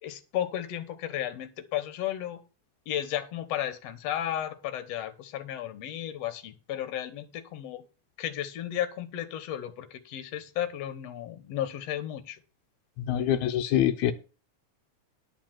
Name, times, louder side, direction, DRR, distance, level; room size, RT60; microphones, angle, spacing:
voice 1, 0.0-2.4 2.9-7.9 8.2-12.4, left 11 dB, 65° left, 11 dB, 2.2 m, -34 dB
voice 2, 13.1-14.1, left 11 dB, 80° left, 4 dB, 2.0 m, -25 dB
11.0 x 4.8 x 7.5 m, 0.34 s
omnidirectional pair, 3.4 m